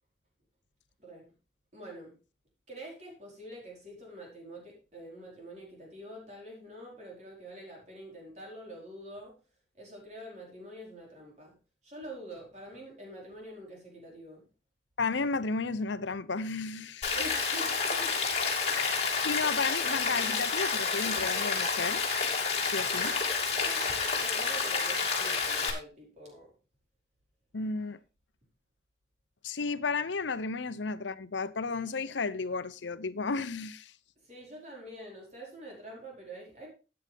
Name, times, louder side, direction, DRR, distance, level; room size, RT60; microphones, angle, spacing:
voice 1, 1.0-1.3 1.7-2.2 2.7-9.3 9.8-11.6 11.8-14.5 17.1-18.2 23.5-26.5 34.2-36.7, right 1 dB, 40° right, 4.8 m, -46 dB
voice 2, 15.0-17.1 18.7-18.9 19.2-22.0 22.7-23.2 27.5-28.0 29.4-33.9, left 4 dB, 85° left, 0.8 m, -33 dB
Rain, 17.0-25.7, left 5 dB, 35° left, 2.8 m, -29 dB
13.0 x 8.9 x 3.5 m
head